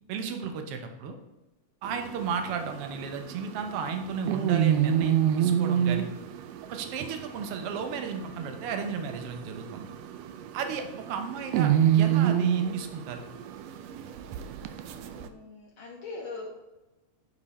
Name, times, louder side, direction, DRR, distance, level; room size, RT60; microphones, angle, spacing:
voice 1, 0.1-1.2 1.8-6.1 6.7-9.9 10.5-13.2, right 6 dB, 65° right, 5 dB, 1.5 m, -34 dB
sound 1, 1.8-15.3, right 10 dB, 85° right, 1.4 m, -28 dB
voice 2, 14.9-16.6, left 3 dB, 65° left, -3 dB, 1.2 m, -41 dB
9.8 x 5.2 x 4.3 m, 1.0 s
omnidirectional pair, 3.6 m